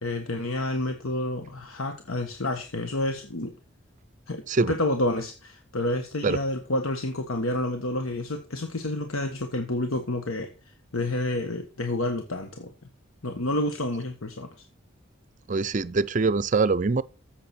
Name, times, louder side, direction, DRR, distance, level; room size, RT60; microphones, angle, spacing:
voice 1, 0.0-3.5 4.3-12.7 13.2-14.6, left 1 dB, 85° left, 1.4 m, -29 dB
voice 2, 15.5-17.0, right 4 dB, 40° right, 0.5 m, -23 dB
13.5 x 7.9 x 4.3 m
head